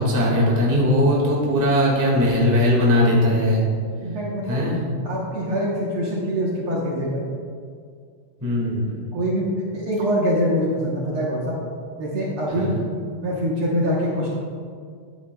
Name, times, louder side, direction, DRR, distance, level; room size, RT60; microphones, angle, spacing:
voice 1, 0.0-3.7 4.5-4.8 8.4-9.0 12.5-12.8, left 1 dB, 20° right, -4 dB, 0.4 m, -19 dB
voice 2, 4.0-4.6 5.0-7.3 9.1-11.5 12.0-12.8 13.2-14.3, equal, 65° right, -4 dB, 1.4 m, -24 dB
12.5 x 8.6 x 2.2 m, 2.1 s
omnidirectional pair, 3.8 m